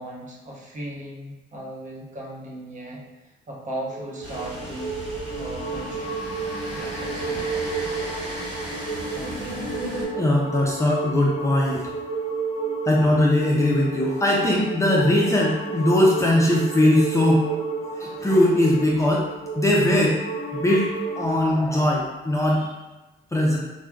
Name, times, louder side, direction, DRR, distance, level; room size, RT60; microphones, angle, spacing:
voice 1, 0.0-3.0 3.5-5.0 5.4-6.3 6.7-7.7 9.1-9.7, right 1 dB, 40° right, -4 dB, 0.8 m, -37 dB
sound 1, 3.8-21.4, right 4 dB, 45° left, 0.8 m, -31 dB
sound 2, 4.2-10.1, equal, 20° right, 1.4 m, -35 dB
voice 2, 10.2-11.9 12.9-17.5 17.9-19.3 19.6-20.2 20.5-22.8 23.3-23.6, left 1 dB, 15° left, -4 dB, 0.4 m, -20 dB
3.1 x 2.2 x 2.4 m, 1.1 s
cardioid pair, 90°, 20 cm